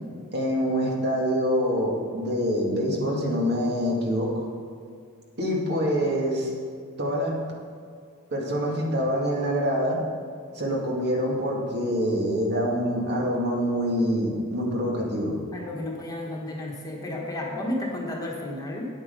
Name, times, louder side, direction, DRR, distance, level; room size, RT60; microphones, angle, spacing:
voice 1, 0.3-4.4 5.4-6.5 7.0-7.4 8.3-10.0 10.5-15.3, equal, 50° right, -2 dB, 2.0 m, -25 dB
voice 2, 15.5-18.9, left 1 dB, 15° left, -2 dB, 1.4 m, -32 dB
9.6 x 8.7 x 5.3 m, 2.2 s
head